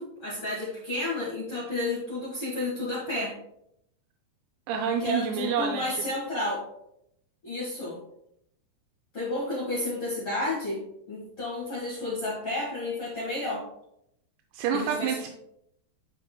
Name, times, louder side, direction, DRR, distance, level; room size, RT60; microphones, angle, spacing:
voice 1, 0.0-3.3 5.0-6.6 7.4-8.0 9.1-13.6 14.7-15.2, left 2 dB, 75° left, -7 dB, 1.2 m, -31 dB
voice 2, 4.7-5.8 14.5-15.3, right 7 dB, 85° right, 3 dB, 2.6 m, -28 dB
12.5 x 4.3 x 2.2 m, 0.77 s
omnidirectional pair, 5.3 m